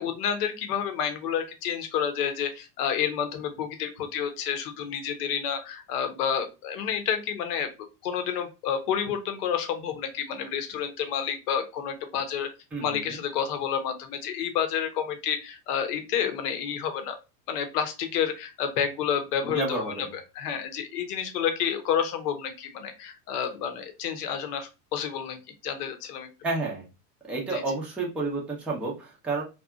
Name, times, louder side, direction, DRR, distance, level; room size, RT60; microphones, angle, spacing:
voice 1, 0.0-7.7 8.0-12.5 12.8-17.2 17.5-19.9 20.1-25.4 25.6-26.3 27.5-27.6, left 8 dB, 65° left, 7 dB, 0.8 m, -29 dB
voice 2, 12.7-13.2 19.4-20.1 26.4-26.9 27.2-29.4, right 3 dB, 5° right, -3 dB, 0.5 m, -30 dB
2.7 x 2.3 x 2.3 m, 0.28 s
hypercardioid pair, 80°, 50 cm